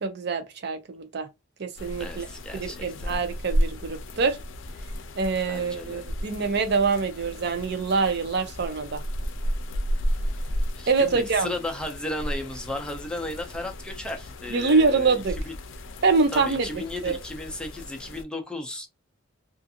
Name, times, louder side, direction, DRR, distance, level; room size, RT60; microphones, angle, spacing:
voice 1, 0.0-1.3 1.6-2.3 2.5-4.4 5.2-9.0 10.9-11.5 14.5-15.4 16.0-16.7 17.0-17.2, right 4 dB, 60° right, 0.5 m, -25 dB
sound 1, 1.8-18.2, equal, 85° left, 0.5 m, -33 dB
voice 2, 2.0-3.2 5.5-6.0 10.8-15.2 15.5-15.6 16.3-18.9, left 1 dB, 5° left, 0.5 m, -34 dB
2.5 x 2.4 x 2.7 m
head